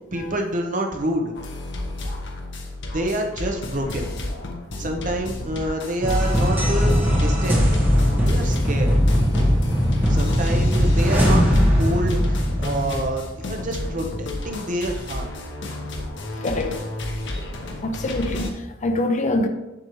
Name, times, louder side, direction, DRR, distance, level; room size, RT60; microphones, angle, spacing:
voice 1, 0.1-1.3 2.9-4.1 4.8-7.6 8.2-9.0 10.1-11.4 11.8-15.3, right 1 dB, 40° right, 0.9 m, -27 dB
sound 1, 1.4-18.5, left 1 dB, 65° left, 1.0 m, -32 dB
sound 2, 6.0-13.5, equal, 10° right, 1.5 m, -19 dB
voice 2, 16.4-16.8 17.8-19.5, left 2 dB, 40° left, 0.6 m, -24 dB
7.4 x 6.5 x 3.1 m
head